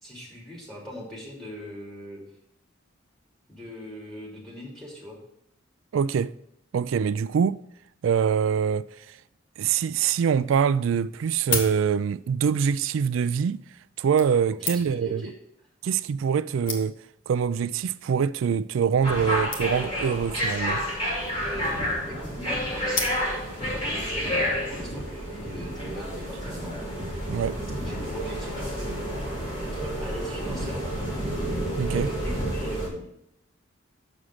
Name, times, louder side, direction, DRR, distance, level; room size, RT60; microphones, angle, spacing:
voice 1, 0.0-2.2 3.5-5.2 14.6-15.3 22.0-23.2 23.7-26.7 27.8-29.0 29.6-31.0 31.9-33.1, left 1 dB, ahead, 2.9 m, -40 dB
voice 2, 5.9-6.3 6.7-7.6 8.0-9.2 9.6-13.6 14.0-15.3 15.8-16.9 17.3-20.8 27.3-27.6 31.8-32.1, right 7 dB, 75° right, 0.3 m, -24 dB
Switch Knife Flick and Put Away, 11.2-12.3 13.2-13.4 14.2-15.1 16.0-16.1 16.3-16.4 16.7-17.2 17.9-18.1 18.4-18.5 18.7-18.8 19.0-19.2 19.5-20.0 21.0-21.5 22.9-23.6 24.1-24.2, left 5 dB, 80° left, 1.5 m, -33 dB
sound 1, 19.0-32.9, equal, 25° left, 2.8 m, -30 dB
7.2 x 6.3 x 6.5 m
head